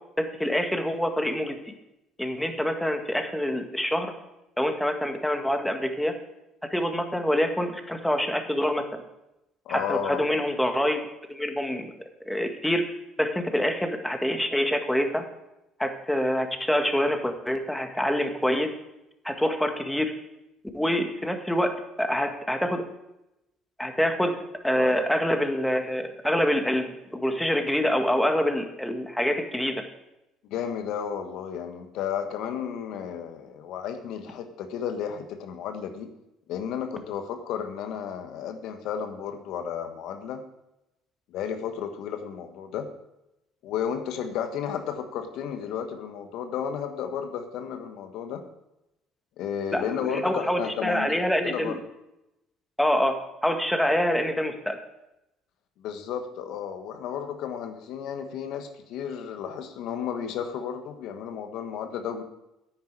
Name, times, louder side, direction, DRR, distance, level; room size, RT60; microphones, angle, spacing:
voice 1, 0.2-1.7 2.2-4.1 4.6-6.2 6.7-8.9 9.7-11.0 11.3-11.9 12.2-12.9 13.2-15.3 15.8-18.7 19.2-20.1 20.7-22.9 23.8-29.8 49.7-51.8 52.8-54.8, equal, 5° left, 5 dB, 1.8 m, -26 dB
voice 2, 9.6-10.3 24.7-24.9 30.5-36.1 36.5-40.4 41.3-42.9 43.6-48.4 49.4-51.1 51.4-51.8 55.8-62.2, left 8 dB, 65° left, 7 dB, 1.3 m, -33 dB
9.6 x 9.6 x 4.8 m, 0.88 s
hypercardioid pair, 60°, 0 cm